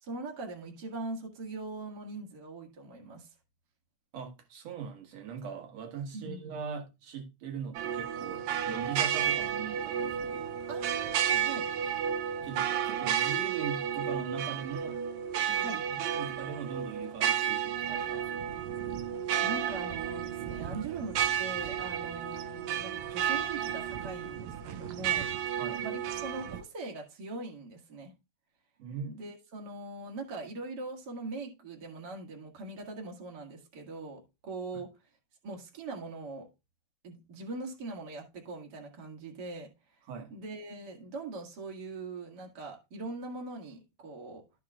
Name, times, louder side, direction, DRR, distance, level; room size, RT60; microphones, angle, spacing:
voice 1, 0.0-3.3 6.1-6.5 10.7-11.7 15.6-15.8 19.4-25.3 25.8-28.1 29.0-34.9 35.4-36.5 37.0-39.7 40.3-44.4, right 3 dB, 40° right, 2.0 m, -41 dB
voice 2, 4.1-10.5 11.3-11.5 12.4-15.0 15.4-18.5 25.5-25.9 28.8-29.1 34.7-34.8 40.1-40.3, right 6 dB, 60° right, 2.4 m, -41 dB
sound 1, 7.7-26.6, right 9 dB, 75° right, 1.7 m, -32 dB
14.0 x 4.8 x 2.4 m
omnidirectional pair, 3.6 m